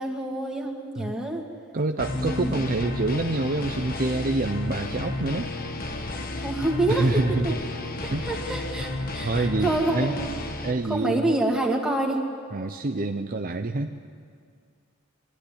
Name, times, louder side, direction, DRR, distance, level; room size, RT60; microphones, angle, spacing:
voice 1, 0.0-1.4 2.1-2.6 6.3-7.1 8.0-10.3 10.9-12.2, right 2 dB, 5° right, -1 dB, 2.3 m, -27 dB
voice 2, 1.7-5.5 6.9-7.6 8.1-8.6 9.2-10.1 10.6-11.3 12.5-13.9, right 2 dB, 45° right, 6 dB, 0.7 m, -27 dB
sound 1, 2.0-10.7, left 2 dB, 45° left, 1.4 m, -32 dB
23.0 x 13.5 x 10.0 m, 2.2 s
head